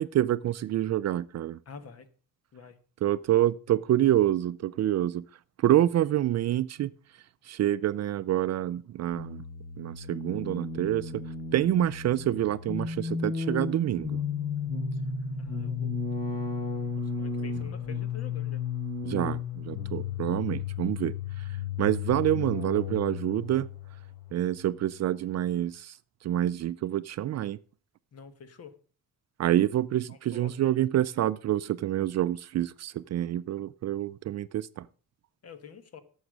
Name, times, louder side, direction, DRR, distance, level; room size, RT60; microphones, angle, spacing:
voice 1, 0.0-1.6 3.0-5.3 5.6-6.9 7.4-9.4 9.8-11.2 11.5-14.2 19.0-21.5 21.8-23.7 24.3-26.0 26.2-27.6 29.4-34.9, right 12 dB, 50° right, 0.4 m, -27 dB
voice 2, 1.7-2.1 2.5-2.8 15.4-16.3 17.0-18.6 28.1-28.7 30.1-30.8 35.4-36.0, left 6 dB, 45° left, 1.4 m, -48 dB
sound 1, 9.1-25.1, left 5 dB, 25° left, 6.0 m, -34 dB
11.0 x 7.2 x 6.5 m
cardioid pair, 150°, 35 cm